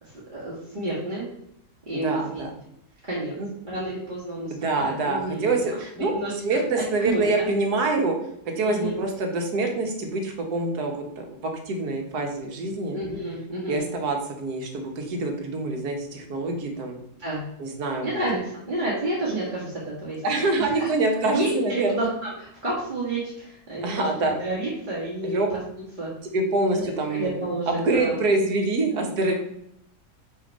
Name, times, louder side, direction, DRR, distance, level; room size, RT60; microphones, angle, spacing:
voice 1, 0.0-1.3 1.9-2.5 3.0-3.3 3.6-5.6 6.1-6.6 7.0-7.5 8.6-9.0 12.9-13.9 17.2-17.4 18.0-20.2 20.5-20.9 21.2-25.6 26.0-26.1 26.7-28.2, right 2 dB, 30° right, -8 dB, 1.7 m, -30 dB
voice 2, 1.9-2.5 3.4-3.5 4.6-6.1 6.4-8.1 8.5-13.0 13.7-17.0 17.6-18.1 20.2-22.1 23.8-24.4 25.2-25.5 26.3-27.4 27.7-29.3, right 2 dB, 70° right, 3 dB, 1.6 m, -25 dB
6.3 x 3.5 x 5.2 m, 0.76 s
omnidirectional pair, 1.8 m